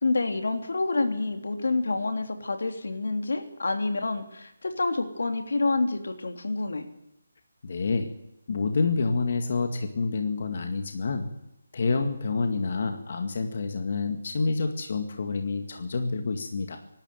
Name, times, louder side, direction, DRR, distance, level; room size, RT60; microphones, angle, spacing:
voice 1, 0.0-6.9, left 3 dB, 75° left, 6 dB, 3.3 m, -28 dB
voice 2, 7.6-8.1 8.5-11.3 11.7-16.8, left 4 dB, 40° left, 5 dB, 2.0 m, -28 dB
24.0 x 12.5 x 9.4 m, 0.86 s
hypercardioid pair, 175°, 0 cm